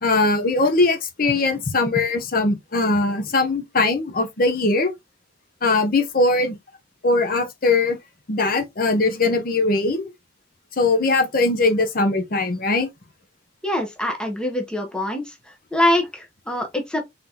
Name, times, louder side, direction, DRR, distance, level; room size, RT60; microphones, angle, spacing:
voice 1, 0.0-4.9 5.6-6.6 7.0-8.0 8.3-10.1 10.8-12.9, left 3 dB, 50° left, 0.7 m, -20 dB
voice 2, 13.6-15.2 15.7-17.0, left 1 dB, 5° left, 0.8 m, -23 dB
3.8 x 3.7 x 2.8 m
head